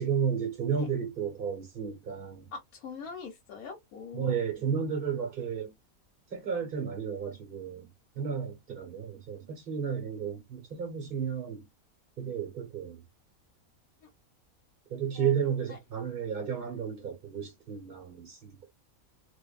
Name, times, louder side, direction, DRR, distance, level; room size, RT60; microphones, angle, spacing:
voice 1, 0.0-2.4 4.1-5.7 6.3-7.9 8.1-11.6 12.2-13.0 14.9-18.6, right 7 dB, 45° right, 1.2 m, -32 dB
voice 2, 2.5-4.3 14.0-14.1 15.1-15.3 15.7-15.8, left 5 dB, 90° left, 1.2 m, -43 dB
2.6 x 2.4 x 2.3 m
omnidirectional pair, 1.5 m